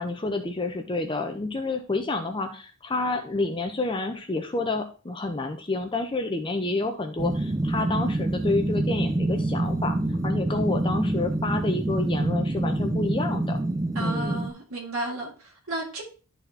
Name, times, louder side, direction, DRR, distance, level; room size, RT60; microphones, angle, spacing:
voice 1, 0.0-10.0 10.2-13.6 14.0-14.5, left 3 dB, 25° left, 0.6 m, -29 dB
sound 1, 7.2-14.5, right 1 dB, 15° right, 0.4 m, -26 dB
voice 2, 13.9-16.0, right 2 dB, 70° right, 2.0 m, -33 dB
12.0 x 4.2 x 2.7 m
head